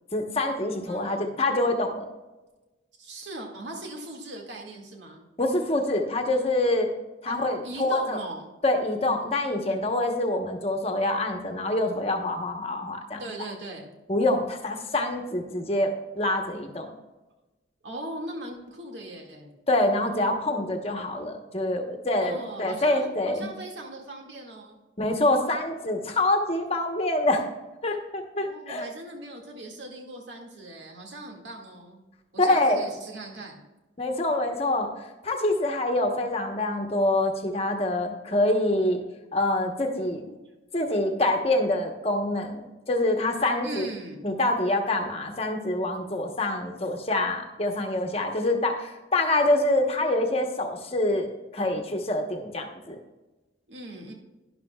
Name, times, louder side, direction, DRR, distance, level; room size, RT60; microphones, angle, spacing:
voice 1, 0.1-2.1 5.4-6.9 7.2-8.2 8.6-13.2 14.1-16.9 19.7-23.5 25.0-27.4 27.8-28.9 32.4-32.8 34.0-34.9 35.2-39.0 39.3-40.3 40.7-42.6 42.9-43.9 44.2-53.0, left 1 dB, 30° left, 3 dB, 1.1 m, -26 dB
voice 2, 0.9-1.3 3.0-5.2 7.3-7.4 7.6-8.4 13.2-14.0 17.8-19.5 22.2-24.8 28.4-32.0 32.3-33.6 40.4-40.5 43.6-44.2 53.7-54.1, right 1 dB, 75° right, 0 dB, 2.0 m, -39 dB
12.0 x 11.0 x 2.3 m, 1.1 s
head